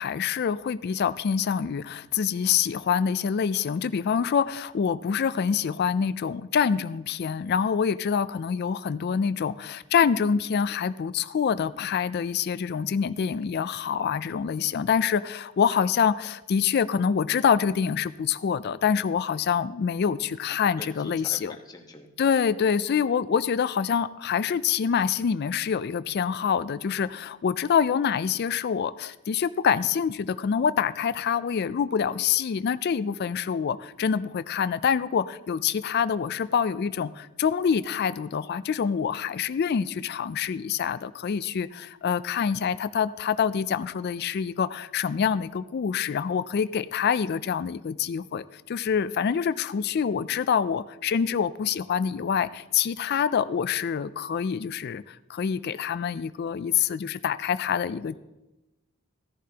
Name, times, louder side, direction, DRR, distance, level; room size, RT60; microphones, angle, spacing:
voice 1, 0.0-21.5 22.2-58.2, left 7 dB, 45° left, 14 dB, 0.3 m, -26 dB
voice 2, 20.8-22.1 49.8-50.0 58.0-58.2, left 1 dB, 15° left, 2 dB, 1.1 m, -45 dB
16.0 x 11.0 x 2.8 m, 1.0 s
head